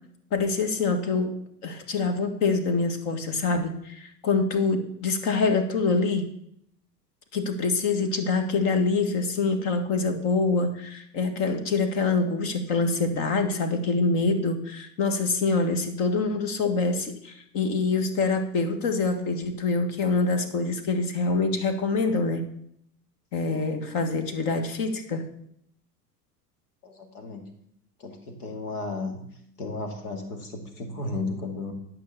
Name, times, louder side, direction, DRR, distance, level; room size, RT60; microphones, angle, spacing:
voice 1, 0.3-1.3 1.6-6.3 7.3-22.4 23.3-25.2, left 3 dB, 40° left, 7 dB, 1.8 m, -25 dB
voice 2, 26.8-27.5 28.0-29.2 29.6-31.7, left 3 dB, 65° left, 5 dB, 2.5 m, -34 dB
12.0 x 5.9 x 7.0 m, 0.72 s
figure-of-eight pair, 80°, 49 cm